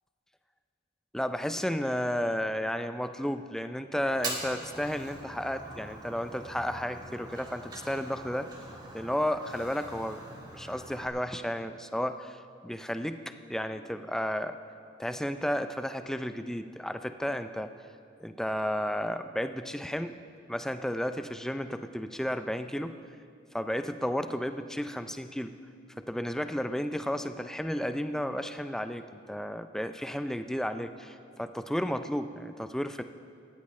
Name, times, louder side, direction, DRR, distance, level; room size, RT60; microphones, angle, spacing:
voice 1, 1.1-8.5 8.9-10.2 10.5-14.6 15.0-17.7 18.2-20.2 20.5-23.0 23.5-25.5 26.0-33.0, equal, 5° left, 9 dB, 0.4 m, -33 dB
Fire, 4.1-11.1, right 2 dB, 25° right, 1.7 m, -43 dB
18.5 x 14.0 x 3.2 m, 2.3 s
head